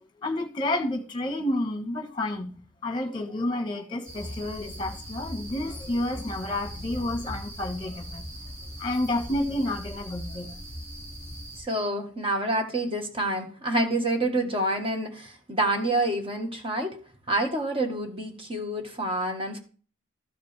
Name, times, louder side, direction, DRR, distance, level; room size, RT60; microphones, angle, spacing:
voice 1, 0.2-8.2 8.8-10.6, left 1 dB, 25° left, 1.4 m, -30 dB
sound 1, 4.1-11.6, equal, 75° right, 3.0 m, -39 dB
voice 2, 11.6-17.0 17.3-19.6, right 1 dB, 25° right, 1.6 m, -27 dB
14.0 x 5.1 x 3.4 m
head